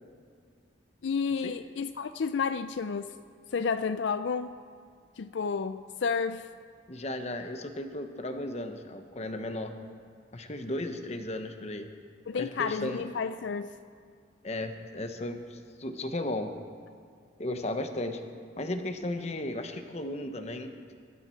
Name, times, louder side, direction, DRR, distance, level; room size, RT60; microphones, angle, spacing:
voice 1, 1.0-3.1 3.5-4.6 5.2-6.5 12.3-13.7, left 5 dB, 75° left, 11 dB, 0.4 m, -31 dB
voice 2, 6.9-9.8 10.3-11.9 12.3-13.0 14.4-16.6 17.4-18.2 18.6-20.7, left 1 dB, 35° left, 7 dB, 1.0 m, -35 dB
23.0 x 12.5 x 4.5 m, 2.2 s
head